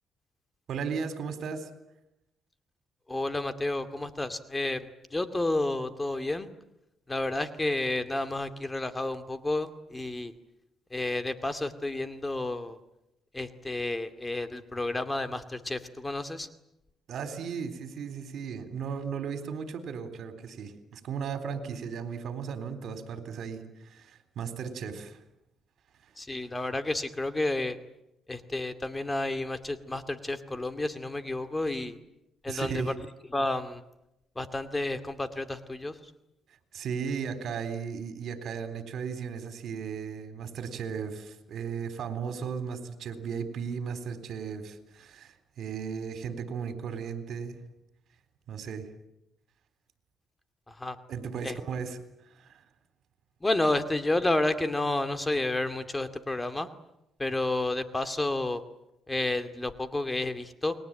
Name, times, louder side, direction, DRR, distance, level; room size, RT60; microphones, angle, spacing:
voice 1, 0.7-1.7 17.1-25.2 31.8-31.9 32.5-33.0 36.7-47.6 48.5-48.9 51.1-52.0 52.3-52.6, right 6 dB, 70° right, 10 dB, 3.9 m, -36 dB
voice 2, 3.1-6.5 7.1-10.3 10.9-12.8 13.3-16.5 26.2-27.8 28.3-32.0 32.4-32.8 33.3-33.8 34.4-35.9 50.8-51.0 51.4-51.5 53.4-56.7 57.2-58.6 59.1-60.7, left 2 dB, 15° left, 10 dB, 2.3 m, -30 dB
30.0 x 21.5 x 9.0 m, 0.87 s
cardioid pair, 90°, 0 cm